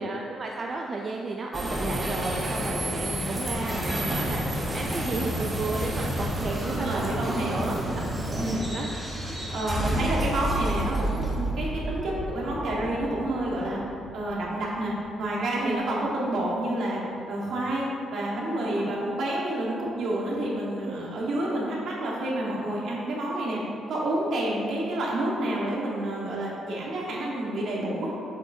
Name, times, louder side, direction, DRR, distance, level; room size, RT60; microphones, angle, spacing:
voice 1, 0.0-8.1 8.4-9.0 9.3-9.5 15.6-15.8 18.6-18.9 20.9-21.0, right 3 dB, 40° right, 0 dB, 0.4 m, -34 dB
sound 1, 1.5-14.9, right 1 dB, 15° right, 1.1 m, -30 dB
voice 2, 6.6-7.9 8.3-8.6 9.5-13.8 14.1-17.0 17.3-23.6 23.9-28.1, right 1 dB, 70° right, -4 dB, 1.5 m, -29 dB
7.4 x 5.5 x 2.7 m, 2.6 s
cardioid pair, 110°, 0 cm